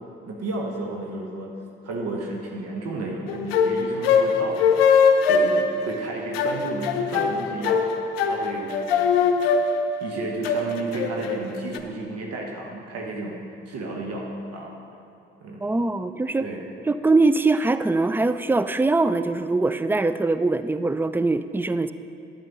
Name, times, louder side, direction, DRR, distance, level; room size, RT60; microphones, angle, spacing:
voice 1, 0.3-1.5 1.8-7.8 8.2-9.2 10.0-14.3 14.5-14.7 15.4-15.8 16.4-16.6, right 2 dB, 55° right, 0 dB, 1.3 m, -32 dB
sound 1, 3.3-11.8, left 5 dB, 80° left, 0.6 m, -21 dB
voice 2, 15.6-16.4 16.9-21.9, right 3 dB, 5° right, 12 dB, 0.3 m, -22 dB
12.0 x 7.5 x 4.0 m, 2.7 s
figure-of-eight pair, 40°, 30 cm